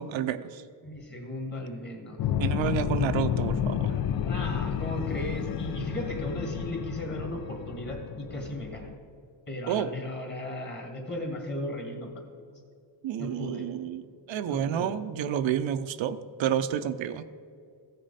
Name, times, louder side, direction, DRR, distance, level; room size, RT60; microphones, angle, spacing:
voice 1, 0.0-0.6 2.4-4.0 9.7-9.9 13.0-17.3, right 9 dB, 65° right, 12 dB, 0.6 m, -30 dB
voice 2, 0.8-2.2 4.2-8.9 9.5-12.2 13.2-13.7 14.5-14.9, left 1 dB, 20° left, 2 dB, 2.0 m, -36 dB
sound 1, 2.2-9.0, left 9 dB, 50° left, 0.5 m, -31 dB
14.5 x 6.5 x 4.1 m, 2.4 s
cardioid pair, 105°, 49 cm